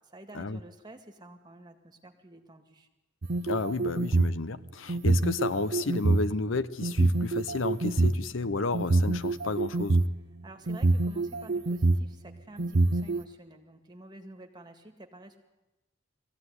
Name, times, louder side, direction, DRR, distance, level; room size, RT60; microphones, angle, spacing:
voice 1, 0.0-2.9 10.4-15.4, right 1 dB, 20° right, 4 dB, 2.1 m, -49 dB
sound 1, 3.2-4.4 4.9-6.2 6.8-8.1 8.7-10.1 10.7-12.0 12.6-13.2, right 2 dB, 55° right, 0.7 m, -25 dB
voice 2, 3.4-10.0, left 3 dB, 70° left, 15 dB, 0.7 m, -32 dB
21.0 x 15.5 x 9.6 m, 1.0 s
head